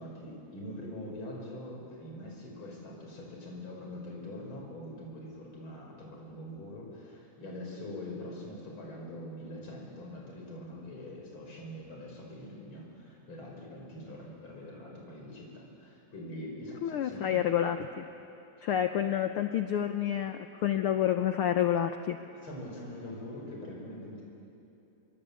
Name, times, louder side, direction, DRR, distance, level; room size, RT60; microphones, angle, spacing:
voice 1, 0.0-17.6 18.6-18.7 19.0-19.1 22.3-24.2, left 1 dB, 40° left, -2 dB, 6.4 m, -43 dB
voice 2, 16.8-18.1 18.6-22.2, left 10 dB, 75° left, 7 dB, 1.3 m, -29 dB
27.0 x 22.5 x 8.4 m, 2.9 s
omnidirectional pair, 3.3 m